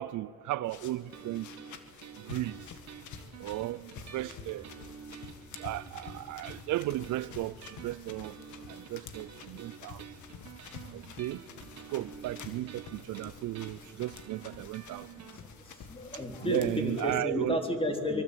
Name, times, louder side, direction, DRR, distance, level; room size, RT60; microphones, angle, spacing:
voice 1, 0.0-1.5 2.2-2.6 3.4-3.8 4.1-4.7 5.6-8.3 8.7-10.0 10.9-11.4 11.9-15.1 16.4-17.6, right 15 dB, 80° right, 0.5 m, -35 dB
sound 1, 0.6-17.1, left 6 dB, 75° left, 2.0 m, -49 dB
sound 2, 1.1-15.4, right 7 dB, 60° right, 1.9 m, -49 dB
voice 2, 15.3-18.2, equal, 20° left, 3.5 m, -32 dB
24.0 x 22.5 x 8.8 m
cardioid pair, 90°, 30 cm